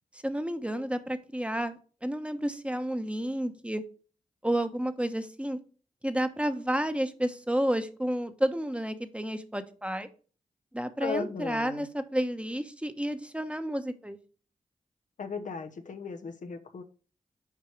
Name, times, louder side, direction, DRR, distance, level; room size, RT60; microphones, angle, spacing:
voice 1, 0.2-3.8 4.4-5.6 6.0-10.1 10.7-14.2, equal, 10° right, 9 dB, 1.1 m, -31 dB
voice 2, 11.0-11.9 15.2-16.8, left 4 dB, 70° left, 7 dB, 1.0 m, -36 dB
6.9 x 4.6 x 4.7 m, 0.38 s
cardioid pair, 40°, 14 cm